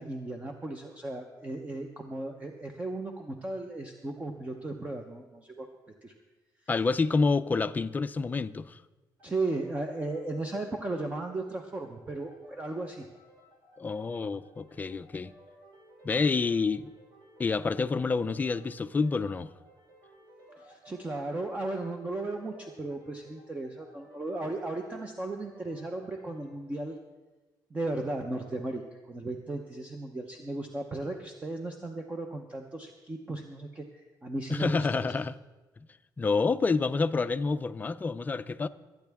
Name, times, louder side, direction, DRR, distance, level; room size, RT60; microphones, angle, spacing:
voice 1, 0.0-5.7 6.0-6.1 9.2-13.1 20.6-27.0 27.7-35.1, right 2 dB, 20° right, 0.8 m, -36 dB
voice 2, 6.7-8.8 13.8-15.3 16.0-16.9 17.4-19.5 34.5-35.4 36.2-38.7, left 4 dB, 25° left, 0.4 m, -28 dB
sound 1, 9.2-26.6, equal, 70° right, 3.7 m, -57 dB
24.5 x 9.2 x 3.5 m
cardioid pair, 145°, 8 cm